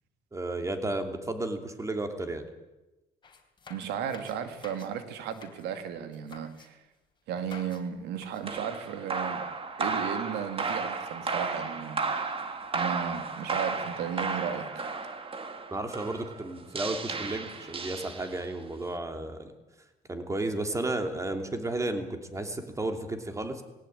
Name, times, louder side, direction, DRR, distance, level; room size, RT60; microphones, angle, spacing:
voice 1, 0.3-2.4 15.7-19.5 20.1-23.6, right 2 dB, 20° right, 6 dB, 2.9 m, -33 dB
sound 1, 3.2-4.9 5.2-5.6 6.1-6.7 7.4-7.8 8.1-8.5, left 5 dB, 30° left, 3.7 m, -50 dB
voice 2, 3.7-6.8 7.3-9.5 9.8-12.4 12.7-14.9, right 8 dB, 85° right, 9 dB, 2.1 m, -35 dB
sound 2, 8.4-18.6, right 4 dB, 35° right, 2.2 m, -34 dB
20.0 x 17.5 x 8.8 m, 1.0 s
cardioid pair, 110°, 17 cm